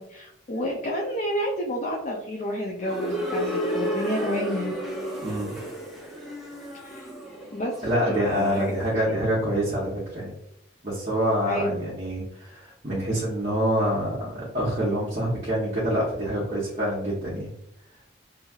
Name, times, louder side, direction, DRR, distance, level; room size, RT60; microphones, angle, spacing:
voice 1, 0.0-4.7 6.8-7.1 7.5-7.7 8.1-9.0 11.5-11.8, equal, 35° left, -2 dB, 0.4 m, -30 dB
sound 1, 2.8-8.7, equal, ahead, 0.6 m, -32 dB
voice 2, 5.2-5.6 7.8-10.3 10.8-17.5, equal, 40° right, -8 dB, 0.8 m, -26 dB
3.0 x 2.6 x 2.3 m, 0.76 s
head